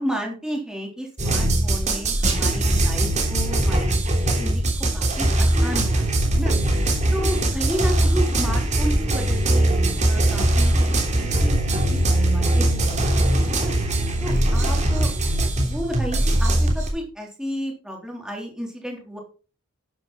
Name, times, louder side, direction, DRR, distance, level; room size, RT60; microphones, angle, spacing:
voice 1, 0.0-6.5 6.9-9.7 10.1-11.6 11.9-13.7 14.2-15.1 15.7-19.2, equal, 5° right, 0 dB, 3.5 m, -32 dB
sound 1, 1.2-16.9, right 1 dB, 35° right, 3.2 m, -21 dB
12.0 x 10.5 x 4.2 m, 0.36 s
head